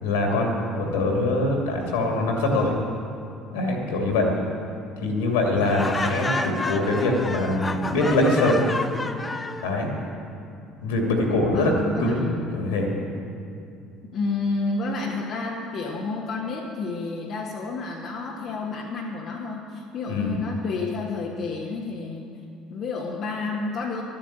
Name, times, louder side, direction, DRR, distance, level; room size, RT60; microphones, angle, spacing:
voice 1, 0.0-2.7 3.5-4.3 5.0-8.6 9.6-9.9 10.8-12.3 12.5-12.9 20.1-20.3, left 2 dB, 75° left, 1 dB, 2.6 m, -23 dB
Laughter, 5.6-9.7, left 2 dB, 20° left, 0.9 m, -30 dB
voice 2, 11.5-12.4 14.1-22.3 22.7-24.0, left 3 dB, 50° left, -2 dB, 1.3 m, -30 dB
12.5 x 9.0 x 9.0 m, 2.5 s
figure-of-eight pair, 60°, 0 cm